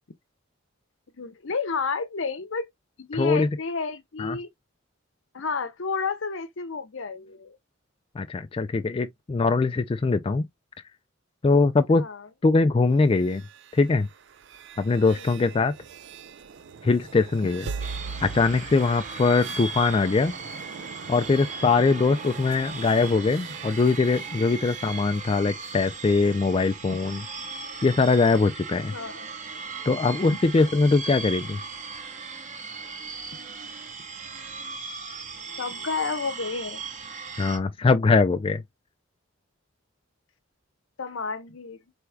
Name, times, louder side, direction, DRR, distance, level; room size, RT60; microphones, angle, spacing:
voice 1, 1.2-2.7 3.0-4.5 5.3-7.6 11.9-12.3 15.1-15.6 17.8-18.1 26.9-27.0 28.7-29.3 35.6-36.8 41.0-41.8, left 4 dB, 70° left, 0.7 m, -31 dB
voice 2, 3.1-3.5 4.2-4.4 8.2-10.4 11.4-12.0 12.4-13.4 13.7-14.1 14.8-15.7 16.8-17.6 18.2-20.3 21.1-27.2 27.8-28.9 29.9-31.6 37.4-38.6, left 3 dB, 25° left, 0.3 m, -22 dB
sound 1, 13.0-25.8, right 5 dB, 60° right, 0.5 m, -42 dB
sound 2, 17.8-37.6, right 4 dB, 35° right, 1.2 m, -38 dB
4.5 x 3.4 x 2.2 m
head